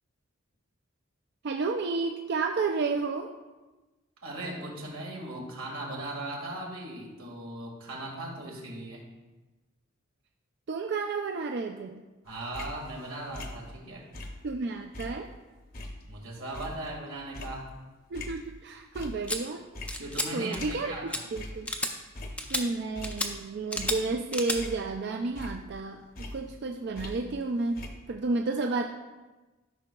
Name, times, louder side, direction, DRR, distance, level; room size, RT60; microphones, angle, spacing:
voice 1, 1.4-3.3 10.7-12.0 14.4-15.3 18.1-19.7 20.3-21.7 22.5-26.0 26.3-28.9, right 3 dB, 50° right, 3 dB, 0.4 m, -31 dB
voice 2, 4.2-9.0 12.2-14.1 16.0-17.7 20.0-21.2, right 1 dB, 90° right, -1 dB, 1.9 m, -38 dB
sound 1, 12.3-14.6 14.9-18.6 18.9-19.4 19.7-21.1 21.3-21.7 22.0-23.4 23.8-25.1 25.4-27.5 27.8-27.9, left 1 dB, 45° left, 0.8 m, -42 dB
sound 2, 19.3-19.4 19.9-20.3 20.5-20.8 21.1-21.2 21.7-21.9 22.4-22.6 23.0-23.3 23.7-24.0 24.3-24.6, left 1 dB, 5° left, 0.5 m, -31 dB
12.5 x 5.6 x 2.3 m, 1.2 s
head